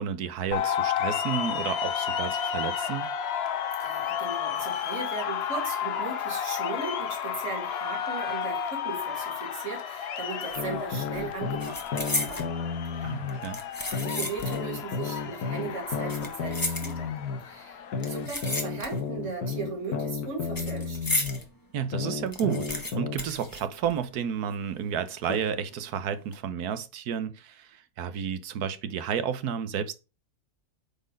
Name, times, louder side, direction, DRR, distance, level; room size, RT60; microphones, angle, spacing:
voice 1, 0.0-3.1 13.0-13.6 21.7-29.9, right 8 dB, 85° right, 1.4 m, -31 dB
sound 1, 0.5-18.3, left 8 dB, 55° left, 0.7 m, -32 dB
voice 2, 3.8-12.5 12.9-13.1 14.0-21.0, right 4 dB, 55° right, 2.4 m, -37 dB
sound 2, 10.5-10.8 11.1-12.5 13.3-14.7 15.0-15.1 15.9-17.3 18.0-19.2 19.5-21.4 21.8-21.9 22.1-24.2 24.5-24.6 25.3-25.7 26.1-26.4, left 2 dB, 15° left, 1.2 m, -34 dB
sound 3, 10.6-13.4 13.9-17.4 17.9-21.4 21.9-23.2, left 5 dB, 85° left, 1.9 m, -32 dB
8.5 x 4.2 x 5.1 m
omnidirectional pair, 1.6 m